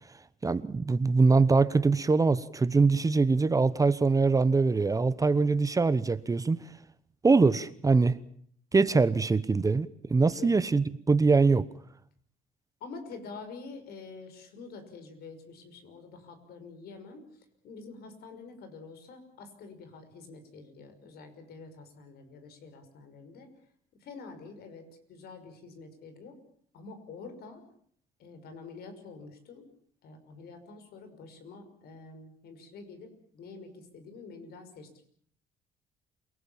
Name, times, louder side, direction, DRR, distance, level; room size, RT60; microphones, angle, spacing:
voice 1, 0.4-6.6 7.2-8.2 8.7-11.7, right 4 dB, 20° right, 1.0 m, -23 dB
voice 2, 12.8-17.2 17.6-23.5 24.0-26.3 26.7-27.6 28.2-29.7 30.0-35.1, left 4 dB, 70° left, 6.0 m, -47 dB
28.5 x 19.5 x 7.3 m
cardioid pair, 110°, 17 cm